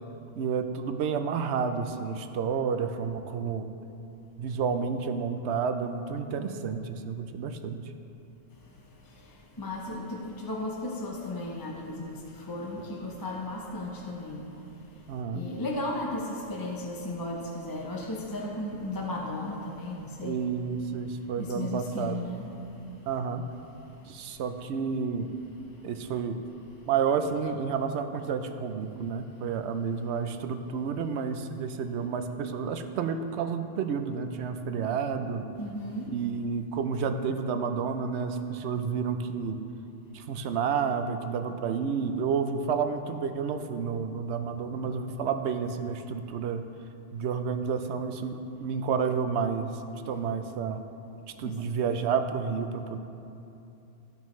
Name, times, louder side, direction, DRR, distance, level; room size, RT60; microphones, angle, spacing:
voice 1, 0.4-3.7 4.4-7.8 15.1-15.5 20.2-22.3 23.1-23.5 24.1-25.3 25.8-26.4 26.9-35.5 36.1-39.6 40.1-46.6 47.1-49.7 50.1-50.8 51.4-53.0, right 6 dB, 70° right, 8 dB, 0.8 m, -30 dB
voice 2, 9.6-14.5 15.3-20.5 21.4-22.5 35.6-36.1 51.5-51.6, left 1 dB, 25° left, -2 dB, 0.6 m, -35 dB
14.5 x 5.3 x 3.1 m, 2.8 s
omnidirectional pair, 1.3 m